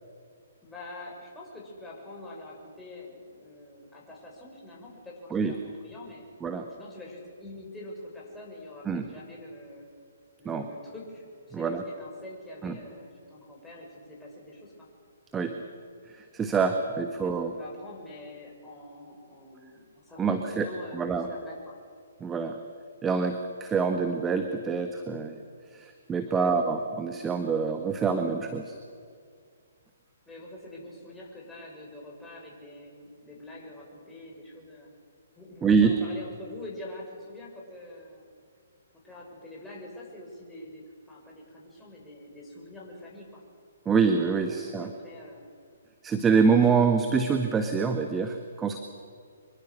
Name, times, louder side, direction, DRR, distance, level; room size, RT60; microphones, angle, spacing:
voice 1, 0.6-5.5 5.8-6.2 6.7-9.9 10.4-14.9 17.2-21.7 26.2-26.5 30.3-34.9 35.3-38.2 39.0-43.4 44.6-45.5, left 1 dB, 10° left, -3 dB, 6.7 m, -45 dB
voice 2, 11.5-11.8 12.6-12.7 15.3-15.6 16.1-17.5 20.2-20.7 20.9-21.3 22.2-22.6 23.0-25.4 25.7-28.7 35.6-36.0 43.8-44.9 46.0-48.8, right 5 dB, 15° right, 6 dB, 1.5 m, -25 dB
26.0 x 22.5 x 6.5 m, 2.1 s
figure-of-eight pair, 130°, 0 cm